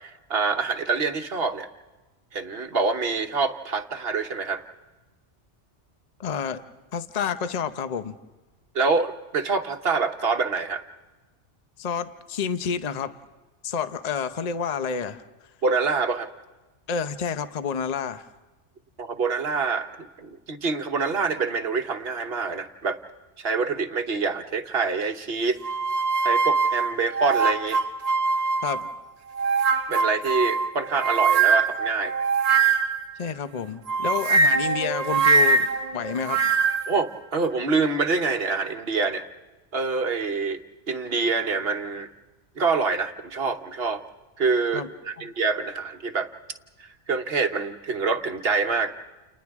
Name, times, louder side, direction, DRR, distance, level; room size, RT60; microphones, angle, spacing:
voice 1, 0.0-1.7 2.3-4.6 8.7-10.8 15.6-16.3 19.0-23.0 23.4-25.6 26.2-27.8 29.9-32.1 36.9-39.2 39.7-40.6 40.9-42.1 42.6-44.0 44.4-46.3 46.8-48.9, right 4 dB, 55° right, 6 dB, 1.3 m, -26 dB
voice 2, 6.2-6.6 6.9-8.2 11.8-13.1 13.6-15.2 16.9-18.3 28.6-28.9 33.2-36.4 44.7-44.9, left 7 dB, 40° left, 10 dB, 0.8 m, -29 dB
sound 1, 25.6-28.9 29.4-33.1 33.9-36.9, right 4 dB, 35° right, 0.9 m, -22 dB
29.5 x 29.5 x 3.6 m, 1.2 s
omnidirectional pair, 1.3 m